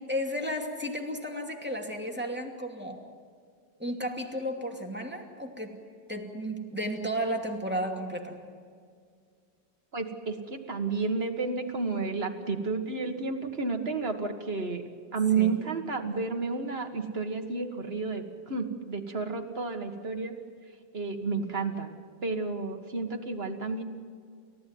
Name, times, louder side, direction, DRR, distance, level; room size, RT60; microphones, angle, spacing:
voice 1, 0.1-3.0 3.8-5.7 6.1-8.3 15.3-15.6, equal, 5° right, 2 dB, 2.5 m, -33 dB
voice 2, 9.9-14.8 15.1-20.4 20.9-21.9 22.2-23.8, right 4 dB, 35° right, 4 dB, 1.9 m, -31 dB
29.5 x 15.0 x 9.5 m, 2.1 s
omnidirectional pair, 2.0 m